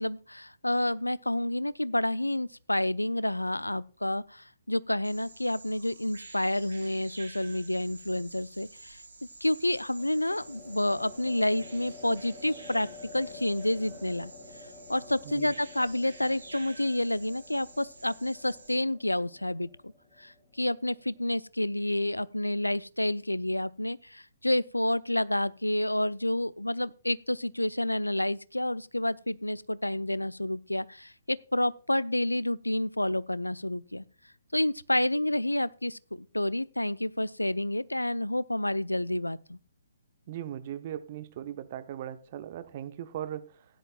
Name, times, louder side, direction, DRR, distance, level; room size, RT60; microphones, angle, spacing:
voice 1, 0.0-9.0 9.4-12.9 13.1-14.3 14.9-19.9 20.2-34.0 34.5-39.6, left 1 dB, 85° left, 0.5 m, -29 dB
Bird vocalization bird call bird song, 5.0-18.7, right 3 dB, 70° right, 4.5 m, -50 dB
sound 1, 7.1-7.4 9.9-21.3, left 3 dB, 25° left, 3.1 m, -50 dB
voice 2, 40.3-43.7, right 11 dB, 35° right, 1.0 m, -38 dB
16.5 x 10.0 x 2.3 m
figure-of-eight pair, 130°, 0 cm